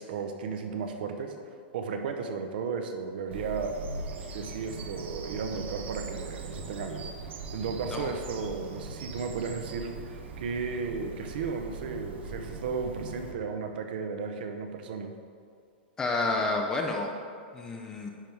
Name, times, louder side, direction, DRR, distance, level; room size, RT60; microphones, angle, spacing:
voice 1, 0.0-1.4 1.7-3.8 4.3-7.0 7.5-15.1, right 5 dB, 55° right, 5 dB, 0.7 m, -34 dB
Bird vocalization bird call bird song, 3.3-13.3, right 3 dB, 85° right, 0.9 m, -40 dB
voice 2, 16.0-17.1 17.5-18.1, left 2 dB, 10° left, 2 dB, 0.4 m, -29 dB
10.0 x 3.4 x 4.5 m, 2.2 s
supercardioid pair, 170°, 6 cm